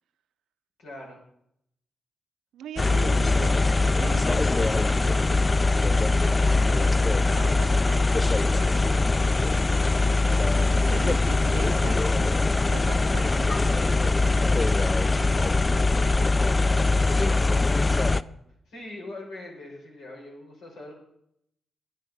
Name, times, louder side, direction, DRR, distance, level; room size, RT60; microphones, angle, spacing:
voice 1, 0.8-1.2 17.9-18.3 18.7-20.9, left 2 dB, 85° left, -2 dB, 4.5 m, -42 dB
voice 2, 2.5-9.3 10.0-12.3 12.7-16.4, right 9 dB, 85° right, 13 dB, 0.5 m, -42 dB
sound 1, 2.8-18.2, left 3 dB, 35° left, 0.4 m, -22 dB
10.0 x 9.3 x 6.1 m, 0.73 s
supercardioid pair, 45°, 0 cm